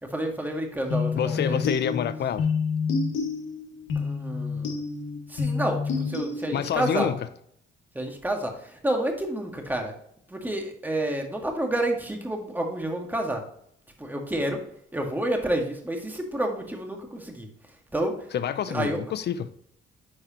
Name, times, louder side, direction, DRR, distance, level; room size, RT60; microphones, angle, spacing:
voice 1, 0.0-1.8 4.0-4.8 5.3-7.1 7.9-9.9 10.3-13.4 14.0-14.6 14.9-17.5 17.9-18.3 18.7-19.0, right 1 dB, 10° right, 1.8 m, -29 dB
sound 1, 0.9-6.9, left 5 dB, 85° left, 1.9 m, -29 dB
voice 2, 1.2-2.5 6.5-7.2 18.3-19.5, left 8 dB, 55° left, 0.7 m, -27 dB
9.9 x 4.8 x 2.9 m
cardioid pair, 90°, 20 cm